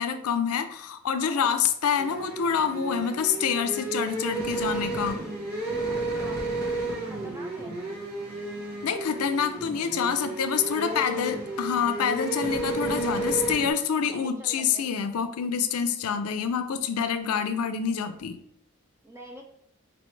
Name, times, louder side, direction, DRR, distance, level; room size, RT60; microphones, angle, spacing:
voice 1, 0.0-5.2 8.8-18.4, left 7 dB, 85° left, 9 dB, 0.4 m, -27 dB
voice 2, 1.2-1.5 5.9-6.4 6.8-7.8 10.8-11.3 13.9-14.9 19.0-19.4, equal, 10° right, 1 dB, 0.5 m, -44 dB
sound 1, 2.0-13.7, right 2 dB, 90° right, 1.2 m, -32 dB
4.4 x 2.9 x 3.1 m, 0.68 s
head